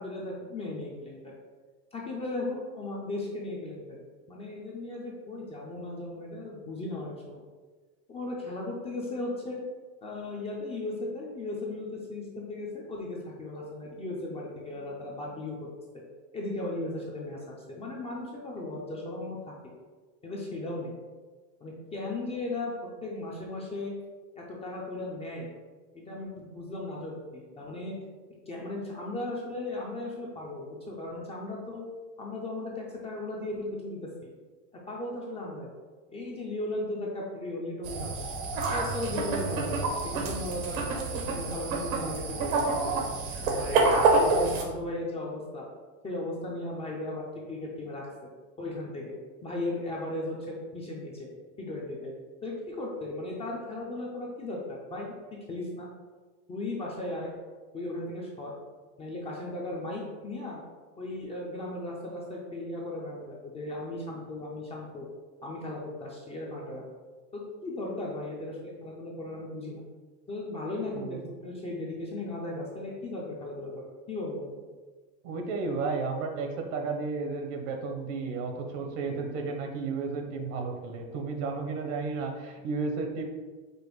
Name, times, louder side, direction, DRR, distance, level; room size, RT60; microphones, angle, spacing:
voice 1, 0.0-1.3 1.9-3.8 4.3-7.4 8.1-9.6 10.0-15.6 16.3-19.5 20.2-20.9 21.6-22.7 23.0-23.9 24.4-25.5 25.9-27.9 28.5-31.8 32.2-34.3 34.9-35.7 36.1-38.3 38.7-40.8 41.2-43.1 43.5-45.6 46.0-48.1 48.6-49.2 49.4-51.3 51.6-52.1 52.4-55.1 55.5-55.9 56.5-57.3 57.7-58.5 59.0-60.6 61.0-65.1 65.4-66.8 67.3-69.8 70.3-74.6, left 2 dB, 15° left, -3 dB, 0.4 m, -36 dB
sound 1, 37.8-44.6, right 3 dB, 85° right, 1.1 m, -27 dB
voice 2, 75.2-83.2, right 4 dB, 65° right, 4 dB, 0.9 m, -33 dB
5.1 x 2.2 x 4.6 m, 1.4 s
supercardioid pair, 145°, 41 cm